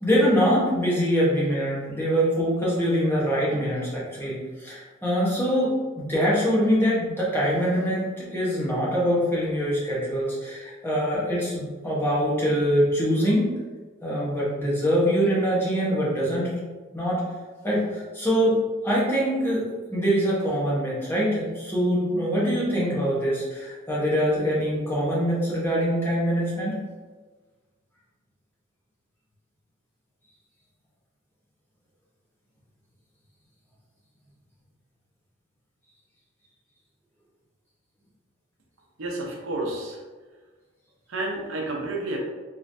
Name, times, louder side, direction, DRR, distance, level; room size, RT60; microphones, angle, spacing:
voice 1, 0.0-13.5 14.0-16.5 16.9-17.2 17.6-26.8, equal, 10° left, -7 dB, 1.0 m, -24 dB
voice 2, 39.0-40.0 41.1-42.2, right 2 dB, 70° right, -1 dB, 0.8 m, -30 dB
3.8 x 3.1 x 2.6 m, 1.4 s
head